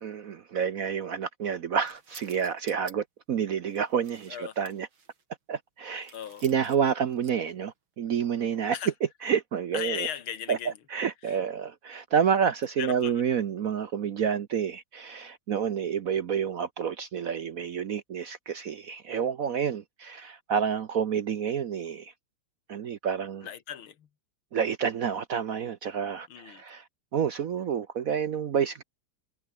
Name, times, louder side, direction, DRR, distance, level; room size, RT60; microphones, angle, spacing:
voice 1, 0.0-4.9 5.5-6.1 6.4-8.8 9.2-10.1 10.5-22.1 22.7-23.5 24.5-26.8 27.1-28.8, right 7 dB, 55° right, 1.0 m, -29 dB
sound 1, 1.8-2.9 3.6-5.2 6.0-7.5 8.5-8.7, right 5 dB, 75° right, 4.0 m, -52 dB
voice 2, 6.1-6.4 8.7-8.9 9.7-10.7 11.3-11.4 12.8-13.2 23.4-24.1 26.3-26.6, left 9 dB, 80° left, 2.3 m, -36 dB
omnidirectional pair, 2.2 m